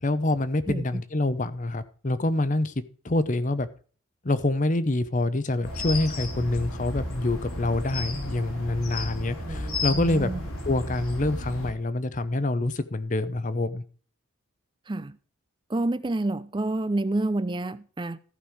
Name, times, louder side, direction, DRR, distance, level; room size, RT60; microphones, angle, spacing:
voice 1, 0.0-2.7 3.0-3.7 4.2-10.3 10.7-13.8, left 2 dB, 35° left, 0.7 m, -26 dB
voice 2, 0.7-1.0 9.5-10.4 14.9-15.2 15.7-18.2, right 2 dB, 20° right, 0.5 m, -29 dB
sound 1, 5.6-11.7, left 2 dB, 90° left, 3.0 m, -33 dB
14.5 x 5.5 x 4.8 m
head